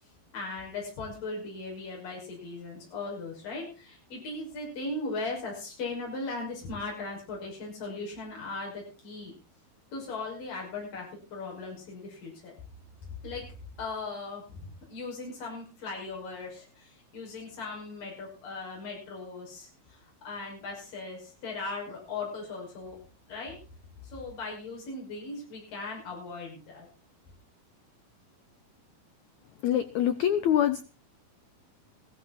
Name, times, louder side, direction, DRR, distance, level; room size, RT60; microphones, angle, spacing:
voice 1, 0.3-9.3 9.9-12.5 13.2-13.5 13.8-23.0 23.3-23.6 24.1-26.9, left 3 dB, 60° left, -3 dB, 7.6 m, -38 dB
voice 2, 29.6-30.8, left 10 dB, 90° left, 11 dB, 1.6 m, -25 dB
16.5 x 14.0 x 4.3 m, 0.35 s
omnidirectional pair, 4.4 m